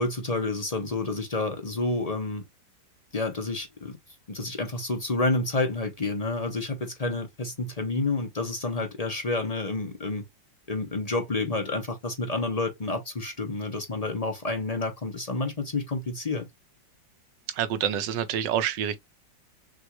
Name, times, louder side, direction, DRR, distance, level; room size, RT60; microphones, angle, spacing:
voice 1, 0.0-2.4 3.1-4.0 4.3-10.2 10.7-16.5, left 2 dB, 35° left, 0.6 m, -29 dB
voice 2, 17.5-19.0, right 9 dB, 75° right, 1.3 m, -27 dB
6.1 x 2.5 x 3.0 m
omnidirectional pair, 2.0 m